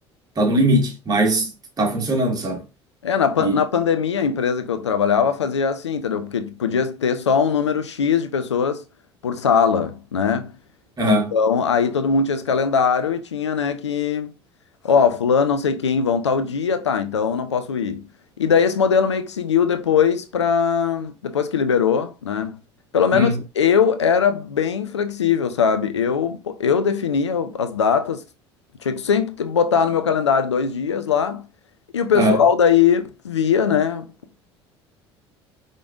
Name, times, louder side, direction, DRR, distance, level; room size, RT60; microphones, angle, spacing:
voice 1, 0.4-1.5 1.8-2.6 3.4-3.6 11.0-11.3 23.1-23.4 32.1-32.4, right 1 dB, 25° right, 1.7 m, -20 dB
voice 2, 3.0-8.8 9.2-10.5 11.0-14.3 14.8-18.0 18.4-22.6 22.9-23.3 23.6-28.2 28.8-31.4 31.9-34.1, left 6 dB, 85° left, 0.5 m, -20 dB
5.0 x 3.7 x 2.5 m
figure-of-eight pair, 65°, 14 cm